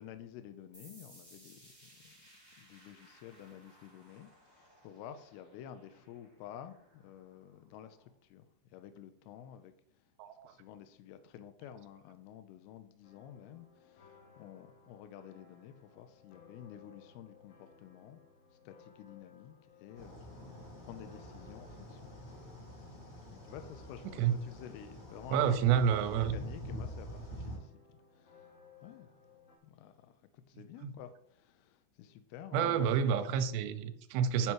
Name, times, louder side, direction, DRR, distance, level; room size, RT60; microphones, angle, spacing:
voice 1, 0.0-2.1 2.6-8.5 8.7-10.0 10.4-18.2 18.7-22.0 23.3-25.6 25.9-28.5 28.8-29.1 29.6-33.2 33.6-33.7, left 10 dB, 85° left, 2.3 m, -51 dB
sound 1, 0.7-8.1, equal, 5° left, 2.4 m, -61 dB
voice 2, 10.2-10.5 24.2-24.3 25.3-26.4 30.8-30.9 32.5-34.5, right 8 dB, 80° right, 2.8 m, -29 dB
sound 2, 13.0-29.6, left 5 dB, 60° left, 3.4 m, -61 dB
sound 3, 19.9-27.6, equal, 45° left, 0.8 m, -46 dB
11.0 x 4.8 x 4.6 m
omnidirectional pair, 5.2 m